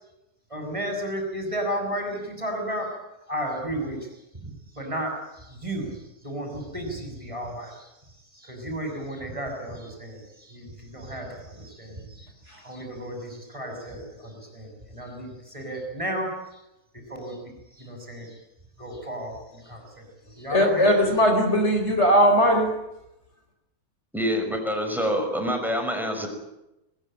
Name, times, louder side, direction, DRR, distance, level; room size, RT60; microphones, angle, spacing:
voice 1, 0.5-2.9 3.3-4.0 4.4-4.5 4.8-5.1 5.6-5.9 6.2-7.7 8.4-10.2 10.5-10.7 10.9-11.3 11.5-11.9 12.6-15.3 15.5-16.3 17.1-17.4 17.8-18.3 18.8-19.3 19.7-19.8 20.4-20.9, right 1 dB, 20° right, 3 dB, 6.5 m, -32 dB
voice 2, 20.5-22.7, equal, 45° left, 3 dB, 4.5 m, -19 dB
voice 3, 24.1-26.3, equal, ahead, 4 dB, 6.0 m, -26 dB
21.0 x 20.5 x 9.0 m, 0.91 s
omnidirectional pair, 1.6 m